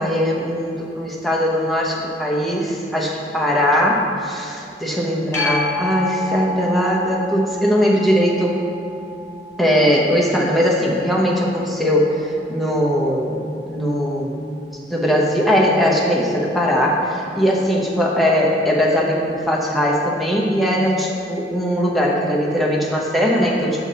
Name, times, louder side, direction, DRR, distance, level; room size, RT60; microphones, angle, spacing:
voice 1, 0.0-8.5 9.6-13.4 13.7-14.4 14.9-23.8, equal, ahead, -4 dB, 0.8 m, -19 dB
sound 1, 5.3-12.5 18.0-18.1, left 1 dB, 15° left, 1.9 m, -30 dB
7.7 x 5.8 x 4.0 m, 2.6 s
head